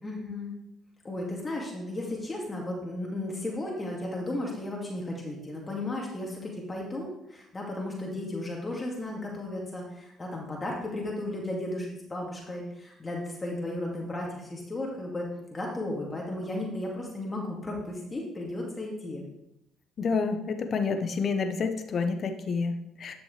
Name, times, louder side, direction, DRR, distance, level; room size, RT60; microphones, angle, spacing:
voice 1, 0.0-0.5 1.0-19.2, left 1 dB, 25° left, -2 dB, 2.4 m, -34 dB
voice 2, 20.0-23.1, left 4 dB, 50° left, 7 dB, 1.1 m, -29 dB
11.5 x 6.1 x 3.4 m, 0.83 s
supercardioid pair, 65°, 0 cm